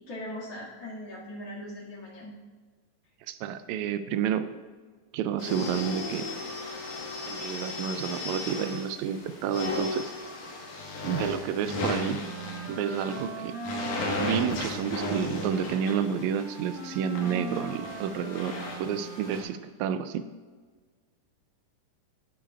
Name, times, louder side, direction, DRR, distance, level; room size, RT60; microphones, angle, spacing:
voice 1, 0.1-2.3, left 1 dB, 50° left, -6 dB, 3.0 m, -40 dB
voice 2, 3.3-4.5 5.1-6.3 7.3-10.1 11.0-12.2 12.7-13.6 14.2-20.3, right 8 dB, 80° right, 11 dB, 1.7 m, -30 dB
sound 1, 5.4-19.4, left 2 dB, 65° left, 2.8 m, -36 dB
Wind instrument woodwind instrument, 12.2-19.6, right 2 dB, 50° right, 0.9 m, -40 dB
13.5 x 8.6 x 2.4 m, 1.5 s
omnidirectional pair, 3.7 m